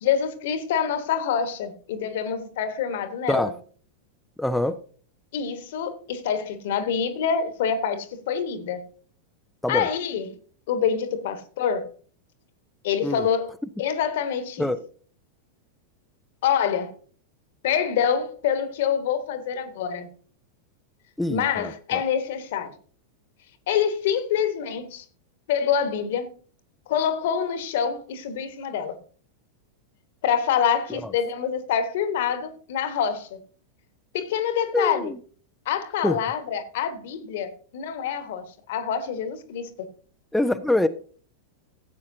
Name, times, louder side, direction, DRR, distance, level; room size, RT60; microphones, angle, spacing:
voice 1, 0.0-3.5 5.3-8.8 9.7-10.3 10.7-11.8 12.8-13.5 13.8-14.7 16.4-16.9 17.6-20.1 21.3-22.7 23.7-25.0 25.5-26.3 26.9-28.9 30.2-33.4 34.1-35.1 35.7-39.7, left 8 dB, 55° left, 1.3 m, -26 dB
voice 2, 4.4-4.8 9.6-9.9 13.0-13.3 14.6-14.8 21.2-22.0 30.9-31.1 34.7-35.2 36.0-36.2 40.3-40.9, left 1 dB, 5° left, 0.5 m, -24 dB
15.5 x 8.4 x 2.7 m
figure-of-eight pair, 90°, 0 cm